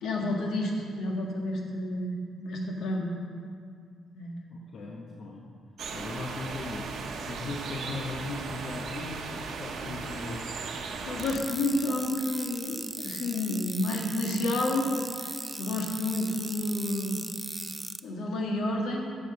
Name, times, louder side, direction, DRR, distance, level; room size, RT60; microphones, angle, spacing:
voice 1, 0.0-3.1 4.2-4.4 10.2-10.3 11.0-14.9 15.2-17.2 18.0-19.1, left 1 dB, 75° left, 0 dB, 1.8 m, -30 dB
voice 2, 4.5-5.5 5.9-10.5, left 3 dB, 55° left, -2 dB, 1.0 m, -38 dB
sound 1, 5.8-11.4, right 4 dB, 65° right, 1.0 m, -37 dB
sound 2, 11.2-18.0, right 2 dB, 15° right, 0.4 m, -38 dB
8.6 x 6.4 x 6.9 m, 2.3 s
cardioid pair, 90°, 0 cm